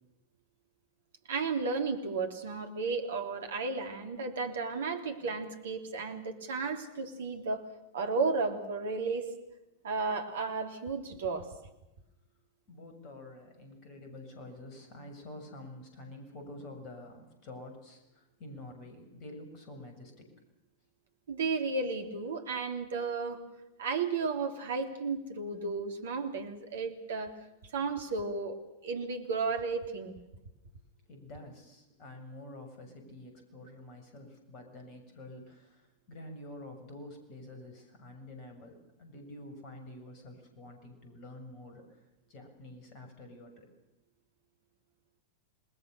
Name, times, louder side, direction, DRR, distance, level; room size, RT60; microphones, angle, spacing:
voice 1, 1.3-7.6 7.9-9.3 9.8-11.5 21.3-23.4 23.8-27.3 27.7-30.2, right 4 dB, 65° right, 6 dB, 3.2 m, -33 dB
voice 2, 12.7-20.3 31.1-41.8 42.3-43.7, left 1 dB, 40° left, 5 dB, 7.0 m, -48 dB
28.0 x 20.5 x 6.8 m, 0.96 s
figure-of-eight pair, 90°, 0 cm